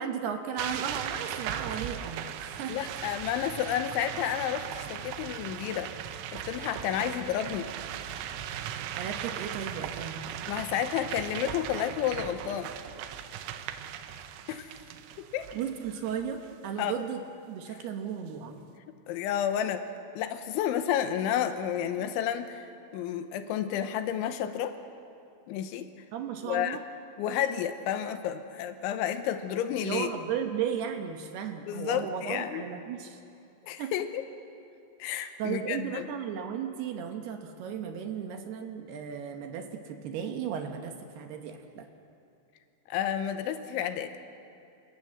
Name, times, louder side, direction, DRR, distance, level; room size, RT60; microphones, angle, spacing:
voice 1, 0.0-2.8 9.0-10.2 15.5-18.7 26.1-26.8 29.8-33.2 33.8-33.9 35.4-41.9, right 8 dB, 70° right, 5 dB, 2.8 m, -35 dB
sound 1, 0.6-16.5, right 10 dB, 85° right, 3.3 m, -38 dB
voice 2, 2.7-5.9 6.3-7.7 10.5-12.7 14.5-14.7 15.2-15.5 16.8-17.0 17.7-17.8 19.1-19.9 20.2-24.8 25.5-25.9 26.4-26.8 27.2-30.1 31.7-32.7 33.6-34.2 35.0-36.1 42.9-44.2, left 10 dB, 85° left, 9 dB, 3.3 m, -31 dB
27.5 x 17.5 x 7.6 m, 2.6 s
omnidirectional pair, 5.5 m